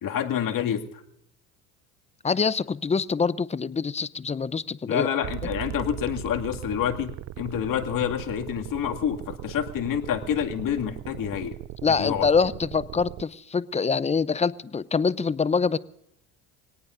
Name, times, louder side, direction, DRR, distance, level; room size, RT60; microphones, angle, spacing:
voice 1, 0.0-0.8 4.9-11.5 12.0-12.3, left 9 dB, 50° left, 4 dB, 2.3 m, -28 dB
voice 2, 2.2-5.1 11.8-15.8, left 5 dB, 15° left, 19 dB, 0.6 m, -25 dB
sound 1, 5.2-13.2, right 15 dB, 40° right, 0.5 m, -38 dB
25.0 x 18.0 x 2.6 m, 0.76 s
hypercardioid pair, 75°, 43 cm